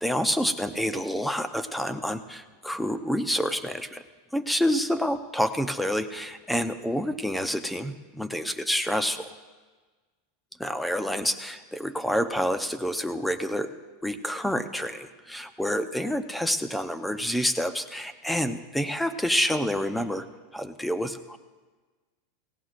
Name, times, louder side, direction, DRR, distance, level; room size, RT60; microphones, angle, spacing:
voice 1, 0.0-4.0 4.3-9.3 10.6-13.7 14.0-20.3 20.5-21.4, equal, 5° left, 10 dB, 0.7 m, -28 dB
17.5 x 17.0 x 2.5 m, 1.3 s
supercardioid pair, 135°, 0 cm